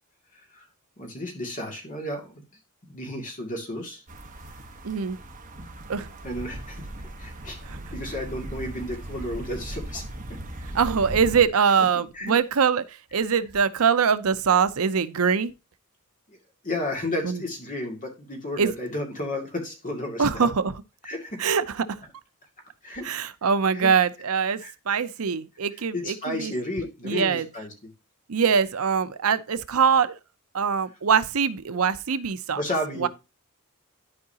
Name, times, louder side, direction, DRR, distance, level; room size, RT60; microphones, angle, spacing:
voice 1, 0.3-0.6 1.0-2.4 2.8-4.0 6.2-6.9 7.2-7.6 7.9-10.0 10.3-10.4 11.8-11.9 12.1-12.4 16.3-16.4 16.6-20.5 21.0-21.4 22.8-23.1 23.7-23.9 24.6-24.7 25.9-27.9 32.6-33.1, left 1 dB, 40° left, 2.4 m, -32 dB
sound 1, 4.1-11.5, right 1 dB, 35° right, 1.3 m, -38 dB
voice 2, 4.8-5.2 5.9-6.1 7.6-7.8 10.7-12.8 13.1-15.5 17.2-17.4 18.6-18.7 20.2-20.7 21.4-22.0 23.0-24.6 24.9-26.5 27.0-27.5 28.3-30.2 30.5-32.6 33.0-33.1, right 6 dB, 75° right, 0.6 m, -23 dB
12.0 x 4.7 x 2.8 m
head